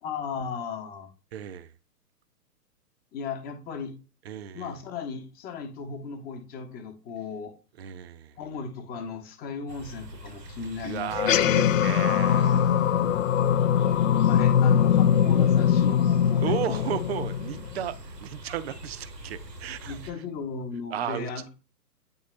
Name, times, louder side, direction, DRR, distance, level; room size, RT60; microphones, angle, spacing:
voice 1, 0.0-1.1 3.1-4.0 4.5-7.5 8.4-11.4 11.8-12.7 13.0-13.3 14.3-16.9 19.8-21.5, left 5 dB, 20° left, 1.0 m, -36 dB
voice 2, 1.3-1.7 4.2-4.7 7.8-8.4 10.8-13.0 16.4-20.1 20.9-21.3, right 9 dB, 40° right, 0.6 m, -34 dB
sound 1, 9.7-20.1, equal, 90° right, 1.1 m, -43 dB
sound 2, 11.1-17.8, left 8 dB, 55° left, 0.5 m, -22 dB
8.8 x 3.6 x 3.2 m
figure-of-eight pair, 120°, 48 cm